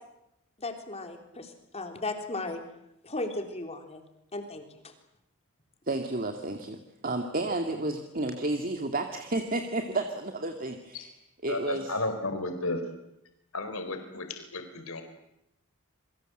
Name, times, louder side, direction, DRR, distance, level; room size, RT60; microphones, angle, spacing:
voice 1, 0.6-2.6 3.0-4.0 4.3-4.9, left 2 dB, 30° left, 5 dB, 3.6 m, -36 dB
voice 2, 5.9-11.1 11.4-11.9, right 2 dB, 40° right, 5 dB, 2.1 m, -31 dB
voice 3, 11.5-12.8 13.5-15.0, left 2 dB, 70° left, 8 dB, 4.0 m, -33 dB
27.5 x 23.5 x 7.8 m, 0.83 s
head